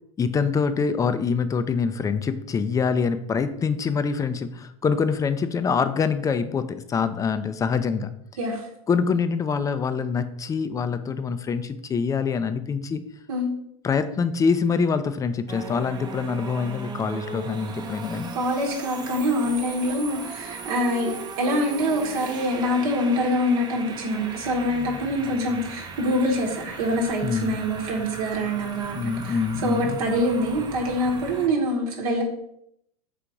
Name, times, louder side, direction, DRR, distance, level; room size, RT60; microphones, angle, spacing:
voice 1, 0.2-8.1 8.9-13.0 13.8-18.3 27.2-27.5 28.9-30.0, left 5 dB, 20° left, 11 dB, 0.3 m, -25 dB
sound 1, 15.5-31.5, right 4 dB, 20° right, 0.6 m, -37 dB
voice 2, 18.4-21.1 21.4-29.3 29.6-32.2, equal, 75° right, -1 dB, 1.0 m, -25 dB
3.8 x 2.8 x 4.6 m, 0.75 s
hypercardioid pair, 100°, 19 cm